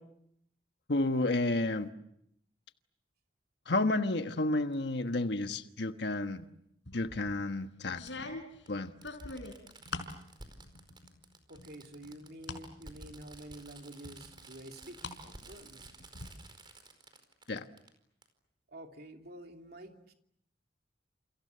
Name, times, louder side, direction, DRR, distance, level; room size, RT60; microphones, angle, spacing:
voice 1, 0.9-1.9 3.7-6.5 6.9-8.3 8.7-8.9 17.5-17.6, left 2 dB, 70° left, 7 dB, 1.3 m, -31 dB
Fireworks, 4.7-4.8 6.4-6.5 8.1-8.2 8.7-8.8 9.0-17.9 18.2-18.3, right 3 dB, 25° right, 4.8 m, -53 dB
sound 1, 6.9-7.3 7.9-10.2 10.6-11.2 11.5-12.7 13.1-13.2 14.0-15.2 15.5-16.3, left 3 dB, 90° left, 4.7 m, -43 dB
voice 2, 11.5-15.8 18.7-20.1, right 1 dB, 60° right, 3 dB, 2.9 m, -49 dB
29.5 x 29.0 x 6.8 m, 0.74 s
head